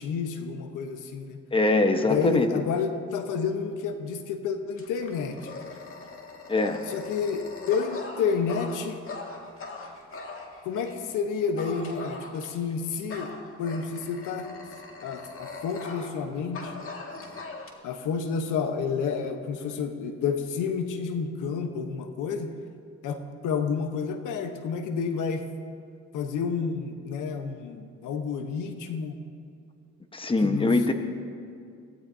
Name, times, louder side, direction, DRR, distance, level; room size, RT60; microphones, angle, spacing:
voice 1, 0.0-1.4 2.1-5.7 6.9-9.0 10.6-13.3 13.6-14.5 15.0-16.7 17.8-22.5 23.0-25.5 26.1-29.2 30.4-30.7, left 6 dB, 90° left, 6 dB, 1.1 m, -30 dB
voice 2, 1.5-2.5 6.5-6.8 30.1-30.9, left 2 dB, 15° left, 6 dB, 1.2 m, -23 dB
Dog, 4.8-11.0 11.6-12.7 13.1-16.2 16.5-17.7, left 3 dB, 45° left, 2.1 m, -41 dB
23.0 x 17.0 x 2.8 m, 2.3 s
cardioid pair, 90°, 30 cm